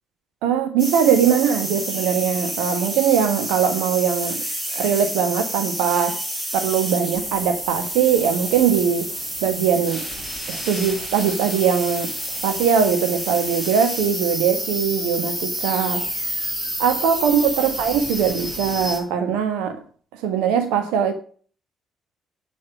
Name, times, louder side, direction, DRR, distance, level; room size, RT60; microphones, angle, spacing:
voice 1, 0.4-4.4 4.7-6.2 6.5-9.1 9.4-10.0 10.5-12.1 12.4-16.0 16.8-19.8 20.2-21.1, right 7 dB, 65° right, 1.5 m, -21 dB
sound 1, 0.8-19.0, right 1 dB, 35° right, 5.8 m, -29 dB
9.8 x 9.1 x 6.2 m
figure-of-eight pair, 45°, 0 cm